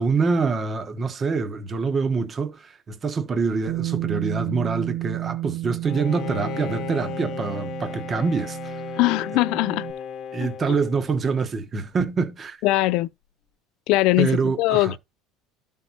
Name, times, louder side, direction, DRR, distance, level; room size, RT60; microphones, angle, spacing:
voice 1, 0.0-8.8 10.3-12.6 14.2-14.9, right 4 dB, 25° right, 1.1 m, -25 dB
Bass guitar, 3.7-9.9, right 16 dB, 80° right, 1.2 m, -32 dB
Bowed string instrument, 5.8-11.4, left 8 dB, 45° left, 1.0 m, -35 dB
voice 2, 9.0-9.9 10.4-10.5 12.6-13.1 13.9-15.0, left 19 dB, 60° left, 0.4 m, -21 dB
12.5 x 5.3 x 2.9 m
cardioid pair, 150°, 0 cm